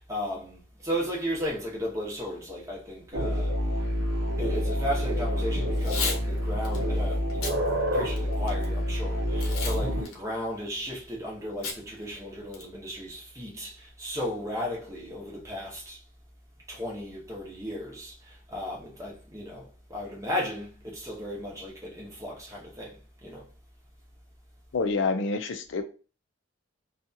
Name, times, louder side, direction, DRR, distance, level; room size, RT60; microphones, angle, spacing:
voice 1, 0.0-3.5 4.4-7.6 7.9-16.0 16.7-23.0 23.2-23.4, equal, 15° right, 0.9 m, -35 dB
sound 1, 3.1-10.0, equal, 60° right, 0.8 m, -27 dB
Packing tape duct tape / Tearing, 5.7-6.2 6.6-6.8 7.3-7.6 8.1-8.7 9.4-9.8 10.1-10.2 11.6-11.8 12.1-12.2 12.5-12.9, left 4 dB, 85° left, 0.8 m, -32 dB
voice 2, 24.7-25.8, left 4 dB, 60° left, 0.4 m, -27 dB
2.7 x 2.3 x 2.6 m
head